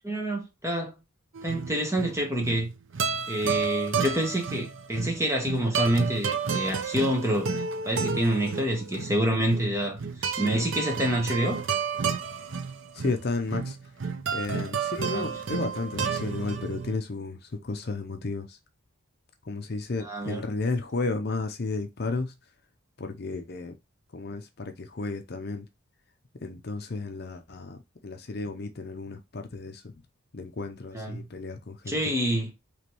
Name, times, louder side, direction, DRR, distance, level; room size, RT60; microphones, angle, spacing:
voice 1, 0.0-1.0 1.4-2.7 3.3-11.6 15.1-15.3 20.0-20.4 30.9-31.2 31.9-32.5, right 1 dB, 15° right, 1.0 m, -27 dB
sound 1, 1.3-17.0, right 6 dB, 60° right, 0.6 m, -31 dB
voice 2, 12.9-13.8 14.3-18.6 19.4-22.3 23.0-23.7 24.1-25.7 26.4-27.8 28.0-29.9 30.3-32.1, left 3 dB, 50° left, 0.6 m, -33 dB
4.9 x 3.0 x 3.0 m
head